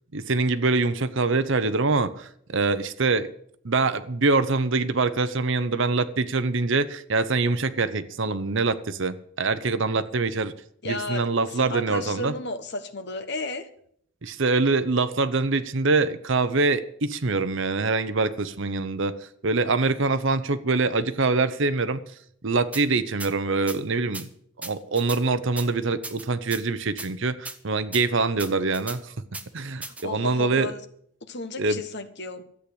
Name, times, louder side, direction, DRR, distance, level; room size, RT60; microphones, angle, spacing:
voice 1, 0.1-3.3 3.6-10.5 10.8-12.3 14.2-19.2 19.4-22.0 22.4-24.3 24.6-29.1 29.5-30.7 31.6-31.8, right 3 dB, 55° right, 0.8 m, -24 dB
voice 2, 10.8-11.3 11.5-13.7 29.9-30.8 31.2-32.4, left 2 dB, 50° left, 1.3 m, -33 dB
sound 1, 22.7-22.8 23.2-23.3 23.7-23.8 24.1-24.2 24.6-25.2 25.6-25.7 26.0-26.6 27.0-27.1 27.4-27.6 27.9-28.0 28.4-29.0 29.3-29.4 29.8-30.0, right 2 dB, 5° right, 0.7 m, -36 dB
13.5 x 8.5 x 8.0 m
head